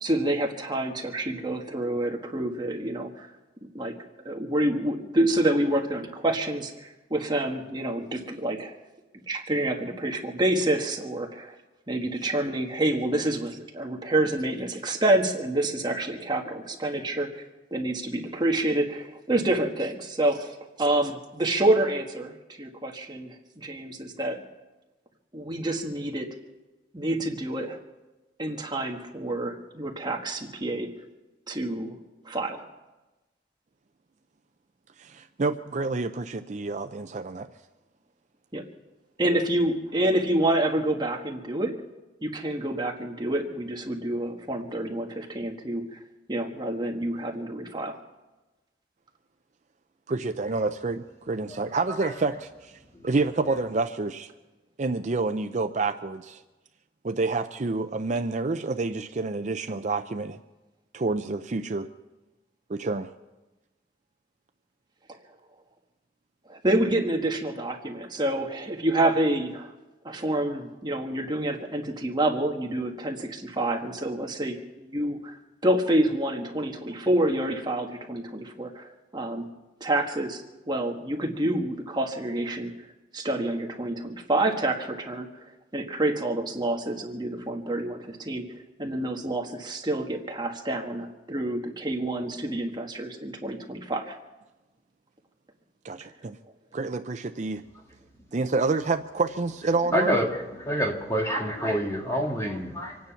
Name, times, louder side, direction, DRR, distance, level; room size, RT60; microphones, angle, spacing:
voice 1, 0.0-3.3 3.7-3.9 4.2-8.7 9.3-11.5 11.9-17.4 17.7-24.4 25.3-26.3 26.9-27.8 28.4-30.9 31.5-32.0 32.2-32.6 38.5-38.6 39.2-41.8 42.2-46.0 46.3-48.0 66.5-69.7 70.0-75.4 75.6-79.4 79.8-80.4 80.7-82.7 83.1-85.3 85.7-94.1, right 1 dB, 25° right, 1.4 m, -28 dB
voice 2, 35.0-37.5 50.1-54.3 54.8-56.4 57.0-60.4 60.9-61.9 62.7-63.1 95.8-96.4 96.7-97.6 98.3-100.2, right 3 dB, 40° right, 0.5 m, -28 dB
voice 3, 99.9-103.0, equal, 15° left, 2.5 m, -27 dB
26.0 x 9.5 x 5.8 m
head